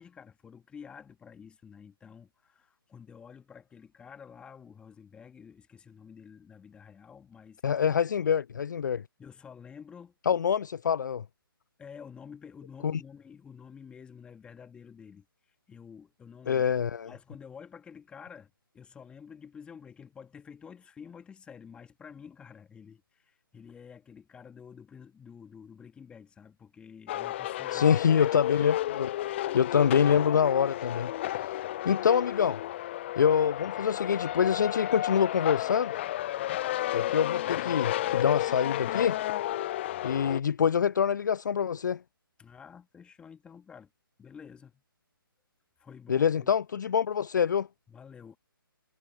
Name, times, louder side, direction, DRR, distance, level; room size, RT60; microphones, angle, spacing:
voice 1, 0.0-7.8 9.2-10.1 11.8-15.3 15.7-16.6 17.1-27.9 42.4-43.9 44.2-44.8 45.8-46.5 47.9-48.4, left 7 dB, 10° left, 2.2 m, -49 dB
voice 2, 7.6-9.0 10.3-11.2 12.8-13.0 16.5-17.1 27.7-29.1 29.5-31.1 31.8-32.6 33.2-35.9 36.9-39.2 40.0-42.0 46.1-47.7, left 7 dB, 55° left, 0.4 m, -25 dB
sound 1, 27.1-40.4, left 14 dB, 30° left, 0.9 m, -32 dB
figure-of-eight pair, 140°, 12 cm